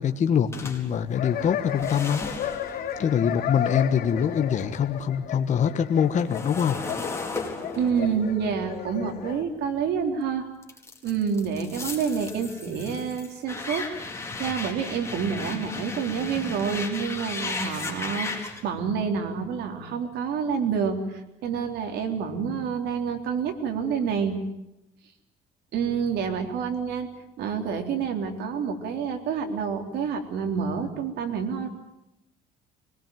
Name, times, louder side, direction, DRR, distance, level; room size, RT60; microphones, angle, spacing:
voice 1, 0.0-2.2 3.0-6.8, left 8 dB, 45° left, 7 dB, 1.4 m, -24 dB
sound 1, 0.5-4.8 5.1-10.1 10.6-18.6, left 3 dB, 15° left, 4.4 m, -36 dB
sound 2, 1.1-9.4, left 9 dB, 60° left, 3.3 m, -34 dB
voice 2, 7.8-10.5 11.0-13.8 14.4-24.4 25.7-27.1 27.4-31.7, right 6 dB, 80° right, 5 dB, 3.6 m, -28 dB
25.0 x 19.0 x 9.2 m, 0.89 s
cardioid pair, 110°, 17 cm